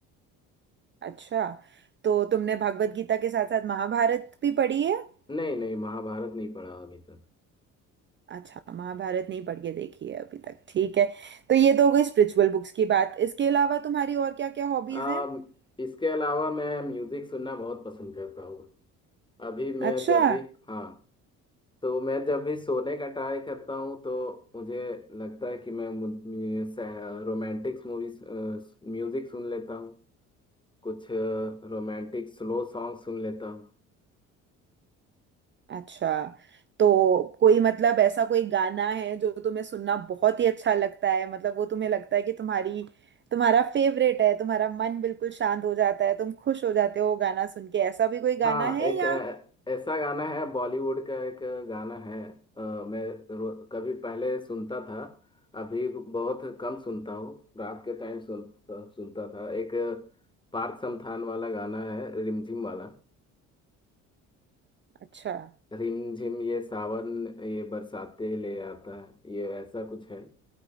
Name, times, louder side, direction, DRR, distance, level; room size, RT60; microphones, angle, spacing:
voice 1, 1.0-1.6 2.0-5.1 8.3-15.2 19.8-20.4 35.7-36.3 36.8-42.9 43.3-49.2 65.1-65.5, right 8 dB, 35° right, 0.5 m, -25 dB
voice 2, 5.3-7.2 14.9-15.5 15.8-18.7 19.4-21.0 21.8-30.0 30.8-33.7 48.4-49.4 49.7-55.1 55.5-60.0 60.5-63.0 65.7-70.3, left 2 dB, 15° left, 1.8 m, -33 dB
15.5 x 8.8 x 2.5 m
supercardioid pair, 85°, 33 cm